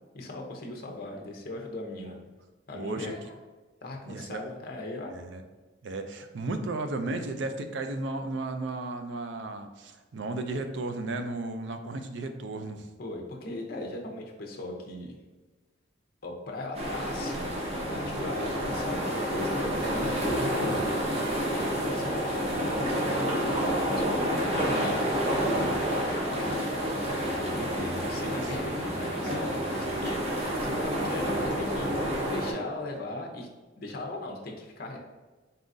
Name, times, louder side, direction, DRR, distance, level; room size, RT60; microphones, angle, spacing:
voice 1, 0.1-2.2 2.7-3.2 3.8-5.2 13.0-15.2 16.2-20.8 21.4-26.6 27.3-33.5 33.8-35.0, left 2 dB, 50° left, 1 dB, 0.6 m, -39 dB
voice 2, 2.7-3.1 4.0-4.4 5.1-5.4 5.8-12.9 28.2-28.3, right 2 dB, 65° right, 7 dB, 0.4 m, -34 dB
sound 1, 16.7-32.5, equal, 30° right, 0.8 m, -29 dB
sound 2, 22.4-30.8, equal, 5° right, 1.3 m, -48 dB
4.1 x 3.7 x 2.6 m, 1.2 s
head